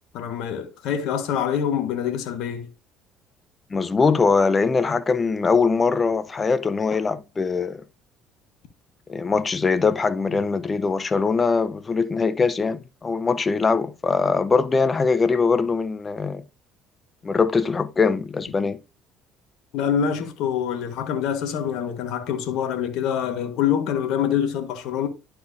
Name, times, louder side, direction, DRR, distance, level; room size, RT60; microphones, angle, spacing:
voice 1, 0.1-2.7 19.7-25.1, left 8 dB, 70° left, 1.4 m, -25 dB
voice 2, 3.7-7.8 9.1-16.4 17.2-18.8, left 4 dB, 30° left, 0.7 m, -22 dB
11.5 x 4.5 x 2.6 m
hypercardioid pair, 60°, 0 cm